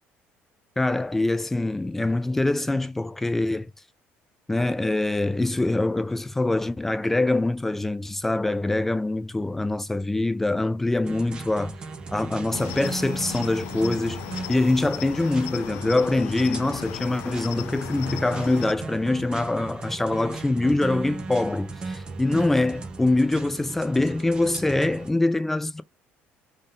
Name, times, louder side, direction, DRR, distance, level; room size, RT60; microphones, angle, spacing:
voice 1, 0.8-3.7 4.5-11.8 12.1-14.2 14.5-25.8, left 2 dB, 5° left, 0.3 m, -24 dB
sound 1, 11.0-25.1, right 4 dB, 20° right, 0.8 m, -37 dB
Cricket, 12.5-18.7, left 13 dB, 80° left, 0.6 m, -37 dB
3.7 x 3.6 x 2.4 m
cardioid pair, 180°, 4 cm